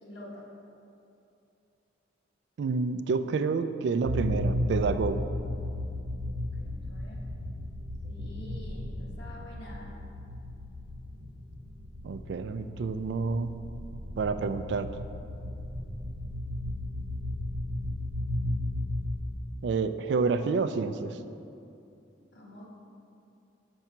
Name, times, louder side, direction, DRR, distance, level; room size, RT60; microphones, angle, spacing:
voice 1, 0.0-0.5 6.6-7.2 8.0-9.9 22.3-22.7, left 1 dB, 60° left, -4 dB, 1.5 m, -46 dB
voice 2, 2.6-5.3 12.0-13.6 14.2-15.1 19.6-21.2, right 4 dB, 60° right, 10 dB, 0.3 m, -29 dB
sound 1, 4.0-19.7, left 1 dB, 85° right, 0.9 m, -34 dB
6.0 x 5.4 x 5.7 m, 2.6 s
head